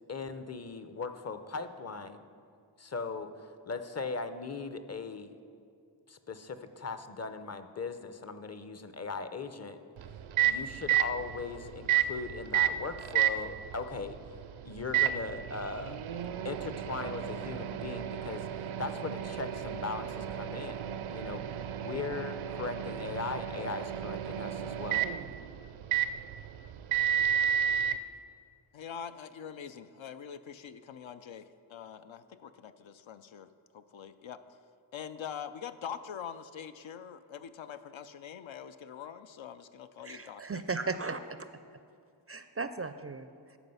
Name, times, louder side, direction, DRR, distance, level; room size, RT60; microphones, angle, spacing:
voice 1, 0.1-2.3 2.8-5.4 6.1-9.8 10.4-14.2 14.6-16.1 16.4-20.8 21.1-25.1, left 4 dB, 35° left, 10 dB, 0.6 m, -39 dB
Microwave oven, 10.0-28.0, right 10 dB, 80° right, 0.5 m, -32 dB
voice 2, 28.7-33.5 33.7-34.4 34.9-40.6 43.4-43.5, left 8 dB, 75° left, 10 dB, 0.5 m, -44 dB
voice 3, 40.0-41.4 42.3-43.6, right 4 dB, 30° right, 10 dB, 0.4 m, -36 dB
13.5 x 5.0 x 5.5 m, 2.4 s
cardioid pair, 45°, 48 cm